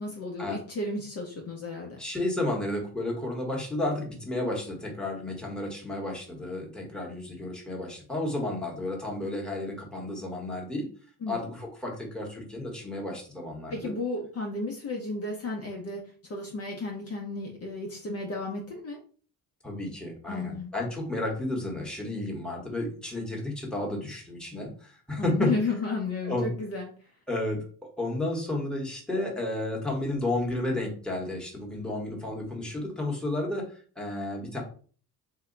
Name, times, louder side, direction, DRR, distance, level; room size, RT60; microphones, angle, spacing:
voice 1, 0.0-2.0 11.2-11.4 13.7-19.0 20.3-20.7 25.2-26.9, left 3 dB, 40° left, 0 dB, 0.7 m, -33 dB
voice 2, 2.0-10.9 11.3-13.9 19.6-25.5 26.2-26.5 27.3-34.6, left 1 dB, ahead, -2 dB, 1.1 m, -32 dB
2.8 x 2.2 x 3.7 m, 0.42 s
cardioid pair, 100°, 38 cm